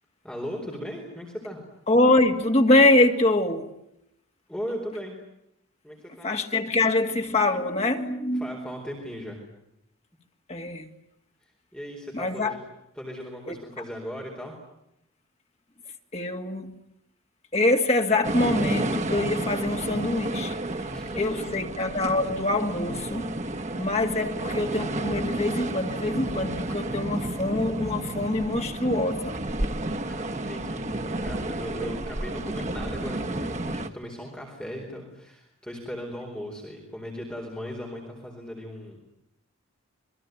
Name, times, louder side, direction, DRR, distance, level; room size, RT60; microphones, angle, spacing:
voice 1, 0.2-1.6 4.5-5.2 5.8-6.3 8.3-9.4 11.7-12.6 12.9-14.6 20.9-21.7 23.6-23.9 30.0-39.0, equal, 5° left, 4.2 m, -37 dB
voice 2, 1.9-3.7 6.2-8.6 10.5-10.9 12.1-12.5 13.5-13.6 16.1-16.7 17.5-20.6 21.2-23.3 23.8-29.3, left 2 dB, 30° left, 2.1 m, -24 dB
sound 1, 18.2-33.9, right 1 dB, 35° right, 1.2 m, -31 dB
26.5 x 22.0 x 9.3 m
head